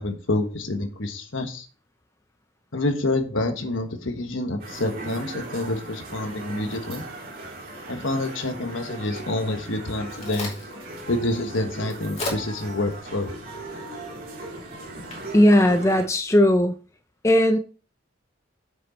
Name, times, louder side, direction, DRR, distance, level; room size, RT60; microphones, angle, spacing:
voice 1, 0.0-1.7 2.7-7.0 7.9-10.5 11.1-13.3, left 2 dB, 75° left, 1.4 m, -27 dB
sound 1, 4.6-16.1, right 2 dB, 45° right, 2.3 m, -38 dB
Crack, 9.7-16.6, left 2 dB, 35° left, 2.7 m, -40 dB
voice 2, 15.3-16.7 17.2-17.6, left 1 dB, 15° left, 0.5 m, -17 dB
7.2 x 6.4 x 4.0 m
head